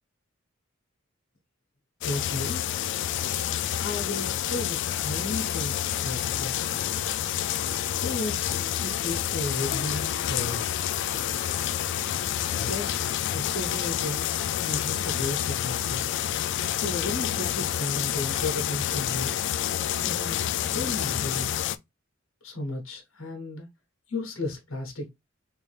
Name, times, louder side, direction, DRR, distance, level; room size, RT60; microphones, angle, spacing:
voice 1, 2.0-2.6 3.8-6.5 8.0-10.9 12.5-16.0 16.7-19.3 20.0-21.5 22.4-23.7 24.1-25.1, left 2 dB, 90° left, 1.1 m, -34 dB
sound 1, 2.0-21.8, left 11 dB, 60° left, 0.3 m, -28 dB
3.3 x 2.7 x 3.3 m
head